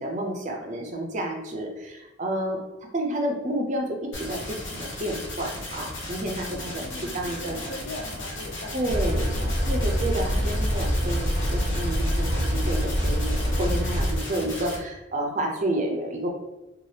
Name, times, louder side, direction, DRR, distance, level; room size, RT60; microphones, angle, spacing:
voice 1, 0.0-2.6 2.9-6.8 7.1-7.6 8.7-9.2 9.7-16.3, right 1 dB, 40° right, 1 dB, 0.5 m, -30 dB
sound 1, 4.1-14.8, left 1 dB, 70° left, 0.9 m, -36 dB
voice 2, 6.5-9.9, left 2 dB, 55° left, 4 dB, 0.4 m, -41 dB
sound 2, 8.9-14.2, equal, ahead, 1.1 m, -25 dB
3.2 x 2.4 x 2.8 m, 1.0 s
head